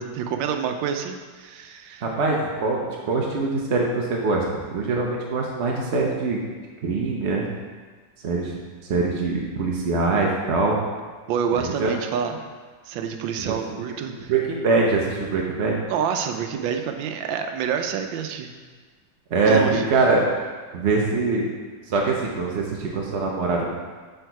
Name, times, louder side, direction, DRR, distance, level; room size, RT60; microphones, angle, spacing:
voice 1, 0.0-2.0 11.3-12.4 12.9-14.3 15.9-18.5 19.5-19.8, right 7 dB, 80° right, 6 dB, 1.4 m, -27 dB
voice 2, 2.0-6.4 6.8-7.5 8.2-8.6 8.9-10.8 11.6-11.9 13.4-13.6 14.0-15.8 19.3-20.2 20.7-21.5 21.9-23.7, right 3 dB, 60° right, -2 dB, 0.7 m, -23 dB
7.9 x 4.0 x 4.6 m, 1.5 s
omnidirectional pair, 2.1 m